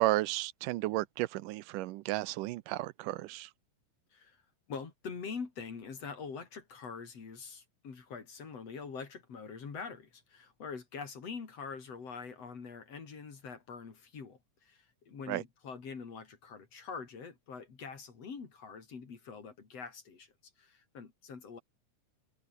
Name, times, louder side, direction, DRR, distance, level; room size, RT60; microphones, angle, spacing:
voice 1, 0.0-3.5 15.3-15.4, right 18 dB, 85° right, 2.2 m, -33 dB
voice 2, 4.7-21.6, left 5 dB, 50° left, 4.3 m, -44 dB
omnidirectional pair, 3.7 m